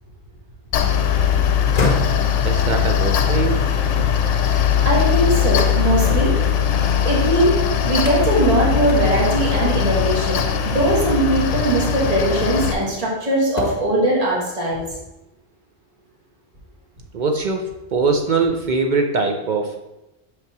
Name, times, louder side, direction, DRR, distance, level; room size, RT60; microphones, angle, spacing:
Mechanical fan, 0.7-12.7, left 8 dB, 70° left, 0.9 m, -20 dB
sound 1, 1.6-4.7 5.1-7.4 8.0-8.5 8.9-9.0 9.5-10.1 11.3-11.4 12.0-13.1 13.5-14.1, left 2 dB, 40° left, 0.7 m, -30 dB
voice 1, 2.4-3.7 4.0-4.1 17.1-19.8, right 4 dB, 60° right, 3 dB, 0.5 m, -22 dB
voice 2, 4.8-6.3 7.0-7.6 7.8-10.4 10.6-14.8, right 1 dB, 30° right, -4 dB, 1.7 m, -20 dB
5.5 x 3.6 x 5.9 m, 0.95 s
omnidirectional pair, 1.4 m